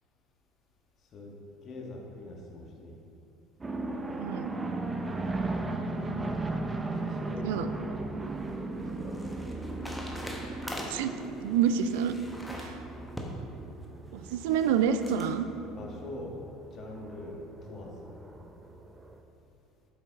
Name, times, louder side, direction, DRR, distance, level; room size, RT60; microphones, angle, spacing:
voice 1, 1.6-3.0 6.8-7.7 8.7-9.6 15.6-18.1, left 2 dB, 45° left, 0 dB, 1.5 m, -44 dB
sound 1, 3.6-19.2, right 2 dB, 20° right, 0.6 m, -37 dB
voice 2, 4.2-4.5 7.4-7.7 10.9-11.1 11.4-12.2 12.5-12.8 14.1-15.5, right 8 dB, 70° right, 10 dB, 0.3 m, -28 dB
sound 2, 8.1-15.3, equal, ahead, 1.2 m, -43 dB
8.2 x 7.1 x 3.6 m, 2.6 s
hypercardioid pair, 65°, 0 cm